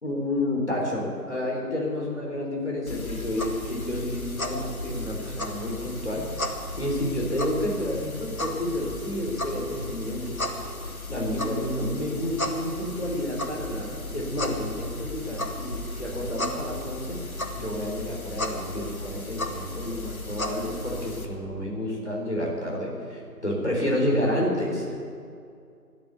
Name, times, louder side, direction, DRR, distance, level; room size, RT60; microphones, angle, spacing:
voice 1, 0.0-10.4 11.1-17.2 17.5-25.0, left 1 dB, 45° left, -2 dB, 3.9 m, -30 dB
sound 1, 2.9-21.3, left 1 dB, 65° left, 1.6 m, -34 dB
12.5 x 10.5 x 9.4 m, 2.4 s
figure-of-eight pair, 175°, 47 cm